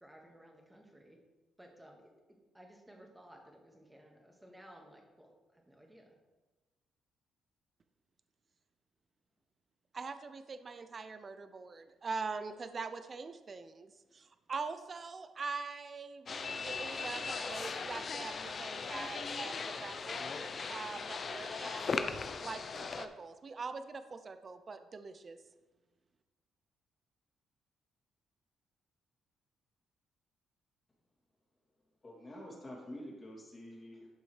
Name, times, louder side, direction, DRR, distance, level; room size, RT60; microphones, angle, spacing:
voice 1, 0.0-1.2 1.6-2.1 2.5-6.1, right 1 dB, 10° right, 1 dB, 1.7 m, -57 dB
voice 2, 9.9-21.9 22.4-25.4, right 4 dB, 40° right, 10 dB, 0.5 m, -43 dB
sound 1, 16.3-23.1, left 4 dB, 45° left, 0.6 m, -38 dB
voice 3, 32.0-34.1, left 1 dB, 25° left, -3 dB, 2.8 m, -47 dB
11.5 x 5.4 x 3.3 m, 1.2 s
cardioid pair, 90°, 0 cm